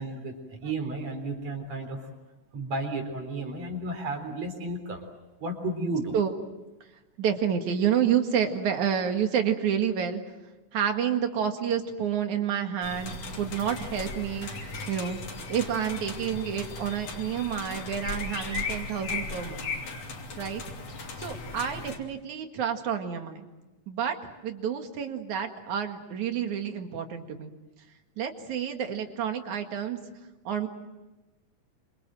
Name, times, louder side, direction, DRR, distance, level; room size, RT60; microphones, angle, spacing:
voice 1, 0.0-2.1 2.5-5.0 5.4-6.2, right 2 dB, 60° right, 6 dB, 5.0 m, -33 dB
voice 2, 7.2-10.2 10.7-14.5 14.9-15.2 15.5-19.7 20.4-20.6 21.2-23.5 23.9-27.5 28.2-30.0 30.4-30.7, right 8 dB, 75° right, 5 dB, 3.3 m, -29 dB
sound 1, 12.8-22.0, left 3 dB, 75° left, 4.5 m, -37 dB
27.0 x 26.5 x 7.7 m, 1.1 s
omnidirectional pair, 3.4 m